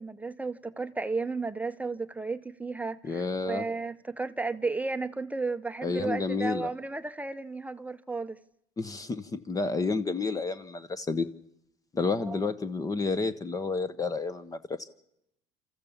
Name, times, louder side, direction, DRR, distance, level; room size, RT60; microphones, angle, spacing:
voice 1, 0.0-8.4 12.2-12.5, right 3 dB, 10° right, 0.7 m, -33 dB
voice 2, 3.0-3.6 5.8-6.7 8.8-11.3 11.9-14.9, left 4 dB, 20° left, 0.9 m, -30 dB
27.5 x 14.0 x 7.2 m
supercardioid pair, 110°, 16 cm